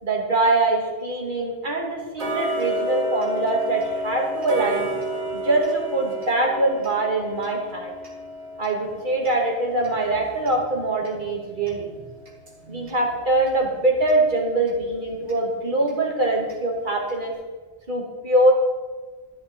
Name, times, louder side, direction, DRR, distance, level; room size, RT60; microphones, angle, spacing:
voice 1, 0.0-4.9 5.3-7.9 8.6-11.9 12.7-17.3 17.9-18.5, right 2 dB, 50° right, -1 dB, 2.3 m, -23 dB
Tick-tock, 2.2-13.0 13.4-13.5 14.1-14.2 14.7-14.8 15.3-15.4 15.9-16.0 16.5-16.6 17.1-17.2, equal, 85° right, 2.6 m, -31 dB
12.5 x 9.4 x 4.3 m, 1.4 s
omnidirectional pair, 1.1 m